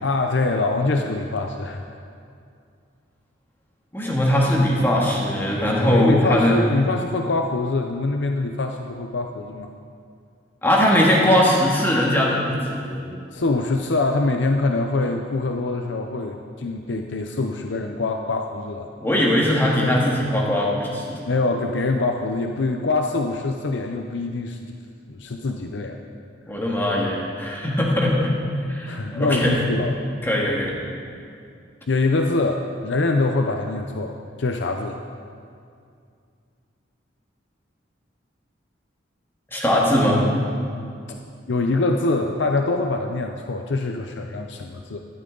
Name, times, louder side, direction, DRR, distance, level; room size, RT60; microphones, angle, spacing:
voice 1, 0.0-1.8 5.9-9.7 13.3-18.9 21.3-24.7 25.1-26.0 28.9-30.0 31.9-35.0 41.1-41.2 41.5-45.0, left 3 dB, 65° left, 4 dB, 0.6 m, -24 dB
voice 2, 3.9-6.6 10.6-13.0 19.0-21.3 26.5-28.3 28.7-29.6 30.2-30.7 39.5-40.2, left 1 dB, 10° left, -4 dB, 1.8 m, -20 dB
12.5 x 12.5 x 3.9 m, 2.4 s
head